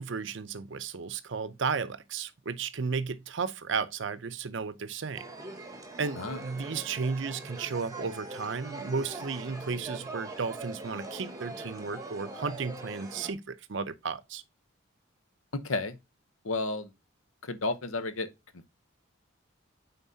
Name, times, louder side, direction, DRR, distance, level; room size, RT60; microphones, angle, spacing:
voice 1, 0.0-5.2 6.0-14.4, right 5 dB, 60° right, 0.6 m, -34 dB
sound 1, 5.1-13.3, right 2 dB, 15° right, 1.0 m, -42 dB
voice 2, 15.5-16.0 16.4-16.9 17.4-18.3, left 3 dB, 85° left, 0.9 m, -32 dB
9.2 x 3.9 x 2.7 m
head